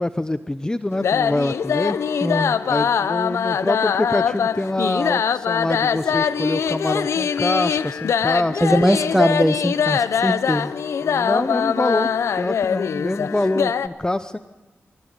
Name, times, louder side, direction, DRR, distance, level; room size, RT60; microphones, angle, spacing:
voice 1, 0.0-2.0 2.6-8.6 11.0-14.4, left 1 dB, 15° left, 12 dB, 0.8 m, -25 dB
sound 1, 0.9-13.9, left 7 dB, 85° left, 0.8 m, -22 dB
voice 2, 2.2-2.5 8.6-10.7, equal, 5° right, 13 dB, 1.3 m, -20 dB
23.0 x 16.0 x 9.8 m, 1.2 s
cardioid pair, 60°, 5 cm